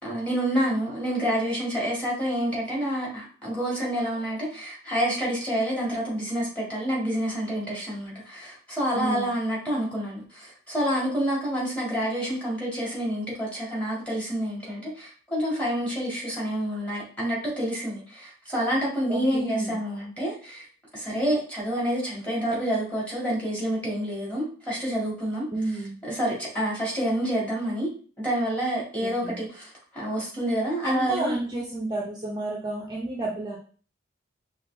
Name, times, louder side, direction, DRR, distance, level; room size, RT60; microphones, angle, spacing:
voice 1, 0.0-20.6 20.9-25.5 26.0-27.9 28.2-31.3, equal, 5° left, -5 dB, 1.9 m, -28 dB
voice 2, 8.9-9.3 19.1-19.8 25.5-25.9 29.0-29.4 30.8-33.6, right 2 dB, 20° right, -2 dB, 0.7 m, -31 dB
5.7 x 2.5 x 3.3 m, 0.41 s
head